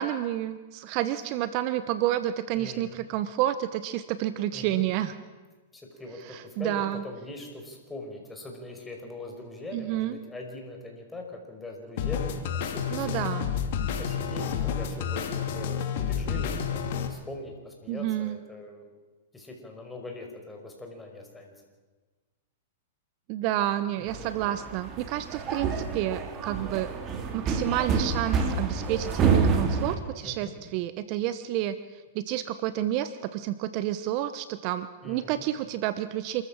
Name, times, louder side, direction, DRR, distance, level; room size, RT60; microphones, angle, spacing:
voice 1, 0.0-5.1 6.2-7.0 9.7-10.2 12.9-13.5 17.9-18.4 23.3-26.9 27.3-36.4, right 13 dB, 45° right, 13 dB, 1.0 m, -30 dB
voice 2, 2.5-3.0 4.5-4.8 5.7-13.4 14.0-18.9 19.3-21.5 24.0-24.3 25.4-25.7 30.2-30.6 35.0-35.5, left 2 dB, 10° left, 2 dB, 5.3 m, -42 dB
sound 1, 12.0-17.1, left 7 dB, 60° left, 2.7 m, -30 dB
sound 2, 24.1-30.0, right 5 dB, 30° right, 2.9 m, -28 dB
27.5 x 14.0 x 7.4 m, 1.3 s
hypercardioid pair, 120°, 0 cm